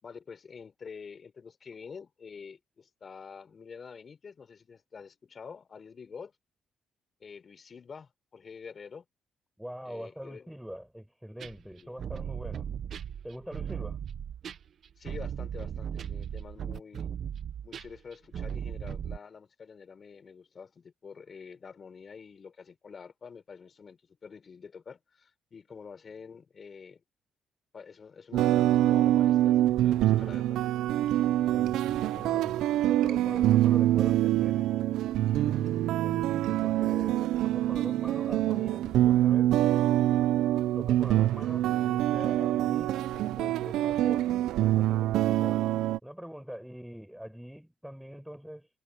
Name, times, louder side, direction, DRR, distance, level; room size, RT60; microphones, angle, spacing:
voice 1, 0.0-6.3 7.2-9.0 9.8-10.5 11.8-12.0 15.0-17.1 17.6-27.0 27.7-30.6, left 6 dB, 45° left, 4.5 m, -47 dB
voice 2, 9.6-12.7 13.2-14.0 31.5-34.7 35.2-39.5 40.8-45.6 46.0-48.7, equal, ahead, 7.1 m, -44 dB
sound 1, 11.4-19.2, right 8 dB, 60° right, 1.3 m, -37 dB
sound 2, 28.3-46.0, right 13 dB, 90° right, 0.7 m, -25 dB
cardioid pair, 90°, 0 cm